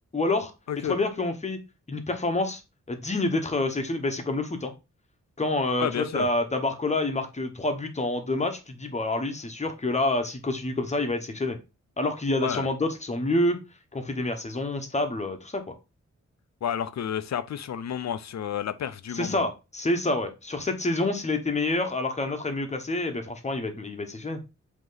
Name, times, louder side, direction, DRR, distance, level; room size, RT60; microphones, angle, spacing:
voice 1, 0.1-0.5 0.8-1.6 1.9-2.6 2.9-4.7 5.4-11.6 12.0-13.6 13.9-15.6 19.1-24.4, left 2 dB, 25° left, 1.0 m, -27 dB
voice 2, 5.8-6.3 12.4-12.7 16.6-19.4, left 9 dB, 65° left, 0.6 m, -31 dB
8.0 x 3.0 x 3.9 m
wide cardioid pair, 160°, 29 cm